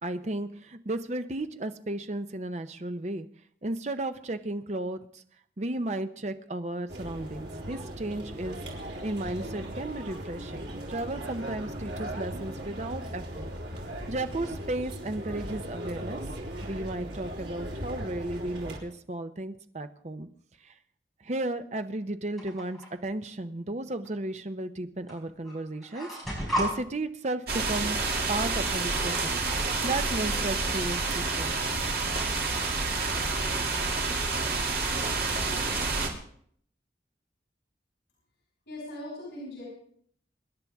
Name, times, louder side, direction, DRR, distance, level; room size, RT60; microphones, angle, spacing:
voice 1, 0.0-3.3 3.6-5.2 5.6-8.6 9.0-13.5 14.1-16.2 16.6-20.3 20.6-20.7 21.2-26.1 26.6-28.0 28.3-29.5 29.8-31.5, right 2 dB, 40° right, 9 dB, 0.7 m, -34 dB
sound 1, 6.9-18.8, right 1 dB, 85° right, 3.7 m, -38 dB
sound 2, 22.4-22.9 24.0-24.1 25.1-25.2 25.4-26.7, equal, ahead, 5.0 m, -32 dB
sound 3, 27.5-36.1, right 3 dB, 55° right, 2.5 m, -28 dB
voice 2, 38.7-39.6, left 1 dB, 75° left, -5 dB, 5.9 m, -39 dB
24.5 x 10.5 x 3.6 m, 0.63 s
head